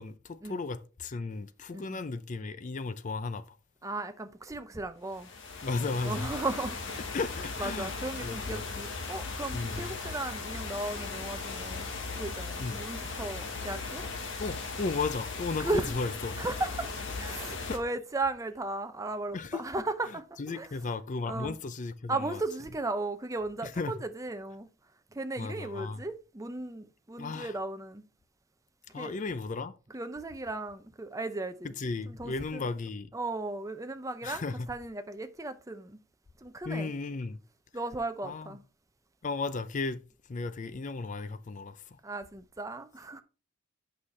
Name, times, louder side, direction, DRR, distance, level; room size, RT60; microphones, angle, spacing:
voice 1, 0.0-3.4 5.6-6.3 7.1-7.9 8.2-8.7 9.5-9.9 12.6-12.8 14.4-16.4 17.5-17.8 19.3-19.6 20.4-22.4 23.6-24.0 25.4-26.0 27.2-27.5 28.9-29.7 31.6-33.1 34.2-34.7 36.7-37.4 38.2-38.6 39.2-40.0 40.3-42.0, left 3 dB, 35° left, 0.4 m, -35 dB
voice 2, 3.8-5.3 6.0-7.0 7.6-14.0 15.6-16.0 16.4-16.9 17.2-20.7 21.3-21.6 22.1-24.7 25.1-28.0 29.0-29.1 29.9-31.7 32.1-32.7 33.1-36.0 36.4-36.9 37.7-38.6 42.0-43.2, right 2 dB, 15° right, 0.5 m, -36 dB
sound 1, 5.1-17.8, left 4 dB, 60° left, 1.4 m, -38 dB
8.5 x 5.7 x 3.2 m
head